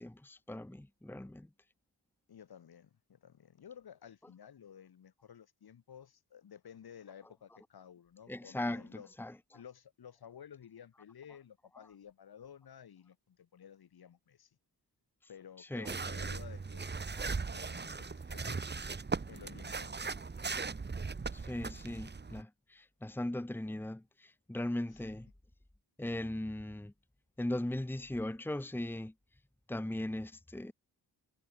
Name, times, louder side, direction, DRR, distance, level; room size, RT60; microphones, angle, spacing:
voice 1, 0.0-1.5 8.3-9.3 15.6-16.0 17.1-17.3 21.3-25.3 26.0-26.9 27.4-29.1 29.7-30.7, left 1 dB, 5° left, 1.5 m, -38 dB
voice 2, 2.3-9.1 9.5-14.6 15.3-16.9 17.3-18.7 19.3-20.0 24.9-25.1, left 8 dB, 60° left, 6.9 m, -54 dB
sound 1, 15.9-22.4, right 4 dB, 25° right, 2.3 m, -38 dB
wide cardioid pair, 155°, 41 cm